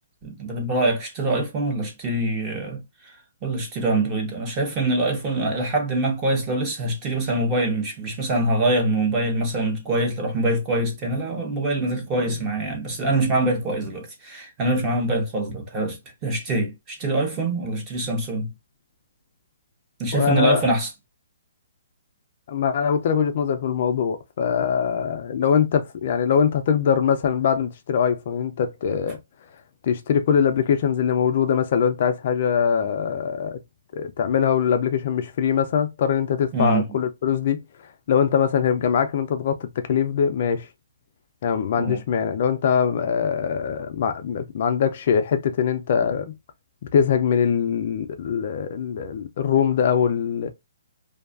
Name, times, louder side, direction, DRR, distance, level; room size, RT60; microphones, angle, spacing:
voice 1, 0.2-18.5 20.0-20.9 36.5-36.9 41.8-42.0, right 2 dB, 20° right, 0.7 m, -24 dB
voice 2, 20.1-20.6 22.5-29.2 29.8-33.6 33.9-37.6 38.1-40.7 41.4-46.3 46.9-50.5, left 7 dB, 40° left, 0.3 m, -22 dB
2.5 x 2.3 x 2.3 m
hypercardioid pair, 170°, 0 cm